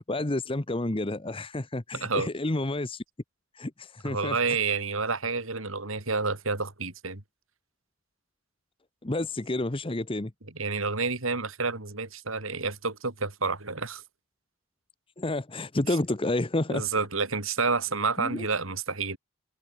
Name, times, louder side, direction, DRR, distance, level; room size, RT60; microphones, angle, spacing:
voice 1, 0.0-3.0 3.5-4.6 9.0-10.3 15.2-16.9 18.2-18.5, left 2 dB, 25° left, 1.0 m, -30 dB
voice 2, 4.0-7.2 10.5-14.0 15.9-16.0 16.7-19.2, right 4 dB, 75° right, 3.5 m, -29 dB
head